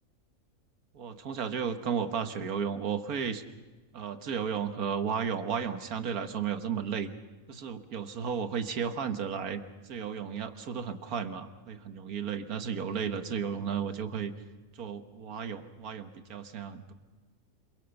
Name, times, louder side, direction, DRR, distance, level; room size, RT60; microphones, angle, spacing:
voice 1, 0.9-3.4 3.9-7.1 7.5-9.6 9.9-14.3 14.8-16.9, right 7 dB, 85° right, 9 dB, 1.8 m, -33 dB
27.0 x 22.5 x 7.0 m, 1.3 s
omnidirectional pair, 1.5 m